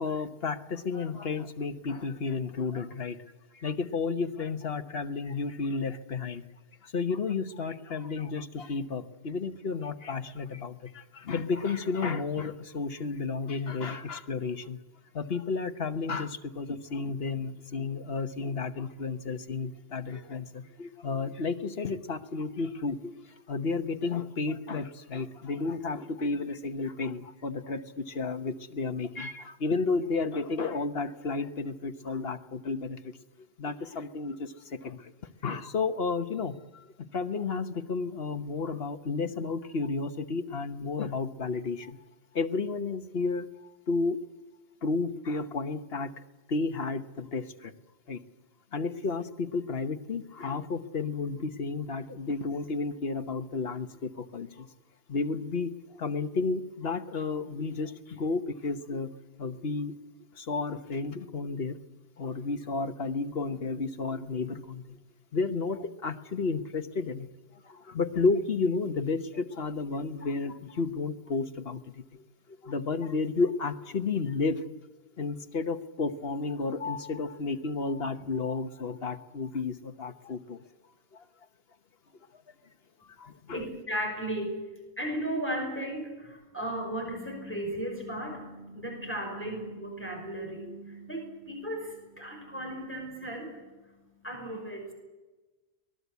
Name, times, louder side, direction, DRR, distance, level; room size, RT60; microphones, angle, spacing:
voice 1, 0.0-3.2 3.5-6.4 6.8-14.8 15.1-33.2 33.6-35.1 35.4-42.0 42.3-43.5 43.9-44.2 44.8-46.1 46.5-47.7 48.1-48.2 48.7-54.7 55.1-59.1 59.4-59.9 60.3-61.8 62.2-65.0 65.3-67.3 67.6-72.2 72.6-74.6 75.2-80.6 81.1-81.2 83.0-83.6, left 4 dB, 60° left, 8 dB, 1.4 m, -32 dB
voice 2, 83.5-84.6 85.0-94.9, right 1 dB, 10° left, 1 dB, 5.7 m, -36 dB
25.0 x 19.5 x 8.3 m, 1.2 s
omnidirectional pair, 1.2 m